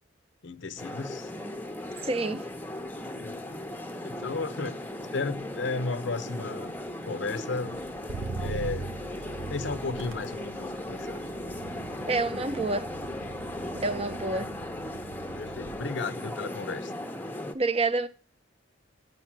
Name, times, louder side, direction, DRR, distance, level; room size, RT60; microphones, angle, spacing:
voice 1, 0.4-1.3 3.1-3.5 4.0-4.8 5.1-6.8 7.1-7.8 8.4-9.0 9.5-11.2 13.8-13.9 14.4-14.6 15.3-16.9, left 3 dB, 65° left, 0.7 m, -34 dB
sound 1, 0.8-17.5, left 1 dB, 10° left, 0.7 m, -37 dB
Motor vehicle (road), 0.9-1.2 1.5-16.0 16.3-16.8, right 3 dB, 75° right, 0.6 m, -43 dB
voice 2, 2.0-2.4 12.1-12.9 13.8-14.5 17.5-18.1, right 3 dB, 30° right, 0.6 m, -28 dB
8.6 x 6.6 x 6.0 m
head